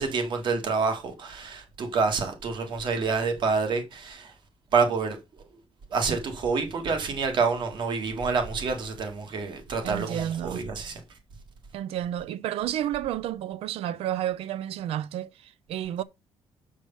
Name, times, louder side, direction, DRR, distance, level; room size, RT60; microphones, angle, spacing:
voice 1, 0.0-4.3 4.7-5.2 5.9-11.0, right 4 dB, 50° right, 1.9 m, -27 dB
voice 2, 9.8-10.7 11.7-16.0, right 11 dB, 80° right, 0.5 m, -31 dB
7.0 x 4.7 x 5.5 m
cardioid pair, 150°, 10 cm